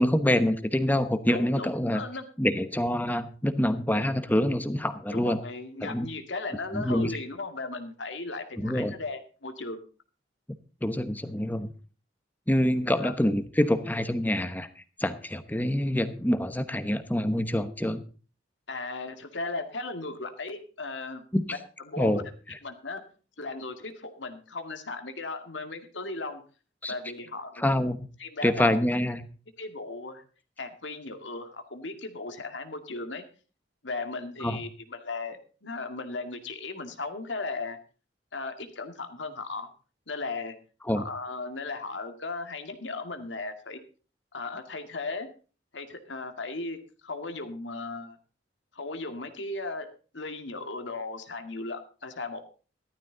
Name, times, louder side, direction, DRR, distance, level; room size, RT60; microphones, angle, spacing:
voice 1, 0.0-2.0 2.4-5.4 5.8-6.1 6.7-7.1 8.6-8.9 10.8-11.7 12.5-14.7 15.0-18.0 21.3-21.5 22.0-22.3 26.8-26.9 27.6-28.0 28.4-29.3 34.4-34.6 40.9-41.0, left 1 dB, 10° left, 12 dB, 1.0 m, -26 dB
voice 2, 1.3-2.2 5.1-9.8 13.0-13.1 18.7-21.2 21.9-22.2 22.6-23.0 23.4-26.4 26.9-27.6 28.2-28.7 29.6-30.2 30.6-33.2 33.8-37.8 38.3-39.7 40.1-40.6 40.9-43.8 44.3-45.3 45.7-48.2 48.7-49.9 50.1-52.5, left 3 dB, 85° left, 7 dB, 2.1 m, -36 dB
15.0 x 13.0 x 3.9 m, 0.37 s
head